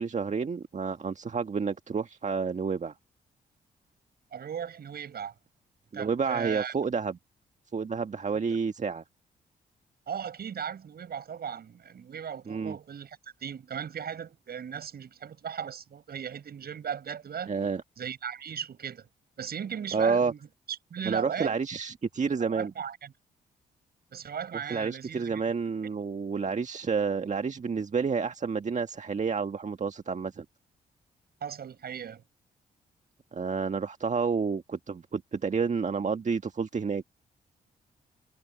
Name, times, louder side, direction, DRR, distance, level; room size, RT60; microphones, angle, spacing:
voice 1, 0.0-2.9 5.9-7.2 7.7-9.0 12.5-12.8 17.5-17.8 19.9-20.3 21.0-22.7 24.7-30.4 33.3-37.1, right 5 dB, 45° right, 1.6 m, -29 dB
voice 2, 4.3-5.3 5.9-6.7 10.1-17.5 18.0-19.1 19.4-20.4 20.7-21.6 22.4-23.1 24.1-25.4 31.4-32.2, right 8 dB, 60° right, 6.2 m, -37 dB
hypercardioid pair, 45°, 18 cm